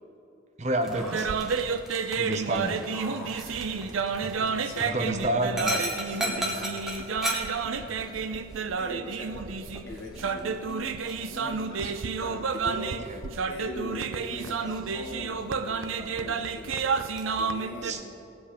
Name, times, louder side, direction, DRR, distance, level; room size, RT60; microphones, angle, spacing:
voice 1, 0.6-1.3 2.2-2.8 4.9-5.8 13.0-13.2 17.8-18.0, right 1 dB, 35° right, 5 dB, 0.8 m, -29 dB
Dog, 0.8-17.4, equal, ahead, 1.3 m, -39 dB
sound 1, 1.0-17.9, right 5 dB, 85° right, 0.6 m, -31 dB
voice 2, 3.1-3.9 4.3-5.0 6.1-7.0 7.8-8.4 8.8-9.5 9.8-10.9 11.3-13.0 13.5-17.0 17.4-18.2, left 1 dB, 60° left, -1 dB, 2.2 m, -41 dB
16.5 x 7.9 x 5.1 m, 2.9 s
head